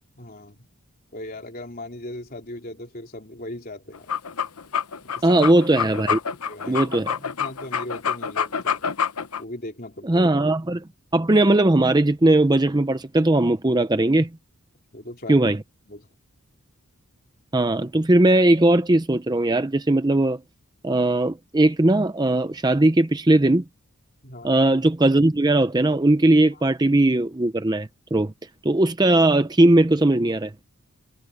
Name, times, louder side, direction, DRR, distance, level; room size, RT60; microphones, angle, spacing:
voice 1, 0.2-0.7 1.1-4.1 5.0-5.4 6.5-8.9 9.4-10.3 14.9-15.5 15.9-16.1 24.2-24.6 26.5-26.6, left 1 dB, 40° left, 4.0 m, -38 dB
sound 1, 3.9-9.4, left 7 dB, 80° left, 1.0 m, -27 dB
voice 2, 5.2-6.2 6.7-7.2 10.0-10.8 11.1-14.3 15.3-15.6 17.5-20.4 20.8-23.6 24.4-28.3 28.6-30.5, right 1 dB, 20° right, 0.6 m, -19 dB
head